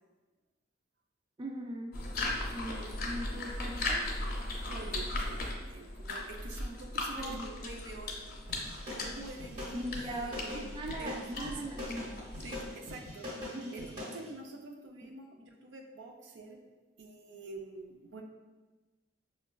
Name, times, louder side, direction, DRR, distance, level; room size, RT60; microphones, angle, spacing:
voice 1, 1.4-2.0 2.5-4.1 7.1-7.6 9.7-12.1 13.5-13.8, right 1 dB, 25° right, 1 dB, 0.3 m, -40 dB
sound 1, 1.9-12.8, left 2 dB, 55° left, 0.6 m, -38 dB
voice 2, 4.7-8.2 8.9-10.7 11.0-11.7 12.4-13.3 13.7-16.6 17.0-18.2, right 2 dB, 85° right, 2 dB, 0.5 m, -47 dB
sound 2, 8.5-14.2, left 1 dB, 45° right, 1.1 m, -42 dB
5.3 x 2.2 x 2.2 m, 1.2 s
head